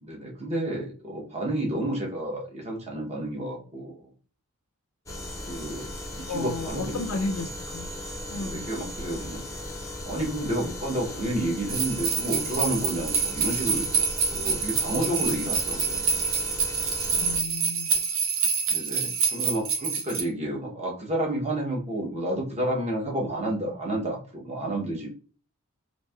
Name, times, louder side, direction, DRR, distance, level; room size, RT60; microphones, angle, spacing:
voice 1, 0.0-4.0 5.5-5.9 6.3-7.4 8.3-9.4 10.0-16.0 18.7-25.1, right 1 dB, 30° right, -1 dB, 0.8 m, -30 dB
sound 1, 5.1-17.4, left 1 dB, 15° left, 0.4 m, -37 dB
voice 2, 6.3-7.9 8.3-8.6 17.1-17.9, left 3 dB, 80° left, 7 dB, 0.4 m, -33 dB
sound 2, 11.7-20.2, right 5 dB, 65° right, 0.6 m, -27 dB
3.1 x 2.6 x 2.2 m, 0.40 s
head